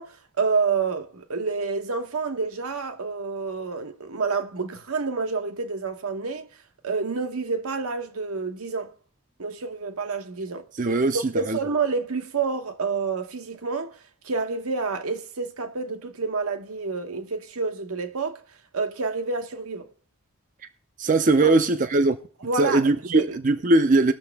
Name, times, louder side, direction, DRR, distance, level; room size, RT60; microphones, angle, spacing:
voice 1, 0.0-6.5 6.8-8.9 9.4-10.7 11.3-14.0 14.2-18.4 18.7-19.9 21.4-21.6 22.4-22.8 23.1-23.4, right 4 dB, 75° right, 0.9 m, -28 dB
voice 2, 10.8-11.6 21.0-22.2 22.6-24.1, right 2 dB, 35° right, 0.5 m, -20 dB
19.0 x 6.6 x 3.4 m
head